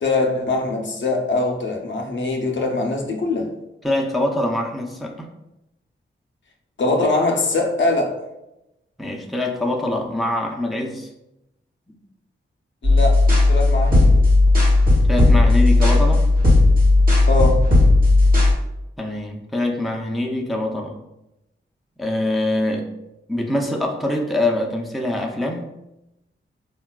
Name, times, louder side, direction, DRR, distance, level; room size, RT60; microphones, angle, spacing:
voice 1, 0.0-3.5 6.8-8.1 12.8-13.2 13.5-14.2 17.3-17.7, left 2 dB, 60° left, 0.5 m, -22 dB
voice 2, 3.8-5.3 9.0-11.1 11.9-12.0 15.1-16.2 19.0-21.0 22.0-22.9 23.3-25.7, left 1 dB, ahead, 0.5 m, -24 dB
sound 1, 12.8-18.5, left 2 dB, 40° right, 0.9 m, -14 dB
3.8 x 2.2 x 2.3 m
cardioid pair, 55°, 21 cm